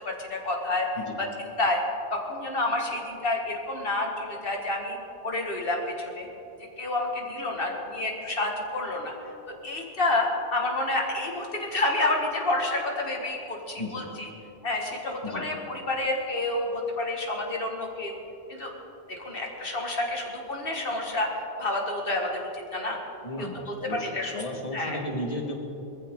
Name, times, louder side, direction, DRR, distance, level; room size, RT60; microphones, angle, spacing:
voice 1, 0.0-0.9 1.2-1.8 2.1-5.0 5.2-6.3 6.8-9.1 9.6-14.3 14.6-18.2 18.5-18.7 19.1-21.3 21.6-23.0 23.4-23.5 23.9-24.4 24.7-25.0, left 2 dB, 55° left, 1 dB, 2.1 m, -29 dB
voice 2, 13.8-14.2 15.2-15.5 23.2-25.6, left 1 dB, 35° left, 2 dB, 1.8 m, -34 dB
21.0 x 14.5 x 3.8 m, 3.0 s
omnidirectional pair, 1.1 m